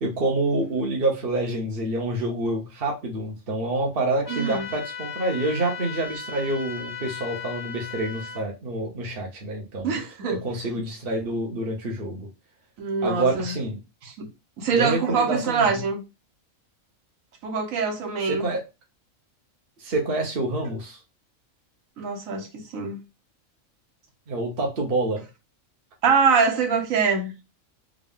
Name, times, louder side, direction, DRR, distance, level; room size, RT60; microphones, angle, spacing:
voice 1, 0.0-10.0 10.4-12.3 13.0-13.8 14.7-15.8 18.2-18.6 19.8-21.0 24.3-25.2, right 2 dB, 45° right, 1.1 m, -27 dB
sound 1, 4.2-8.4, left 6 dB, 20° left, 0.7 m, -36 dB
voice 2, 4.3-4.7 9.8-10.4 12.8-13.5 14.0-14.3 14.6-16.0 17.4-18.5 22.0-23.0 26.0-27.3, right 5 dB, 75° right, 1.3 m, -24 dB
3.7 x 2.5 x 3.5 m
omnidirectional pair, 1.4 m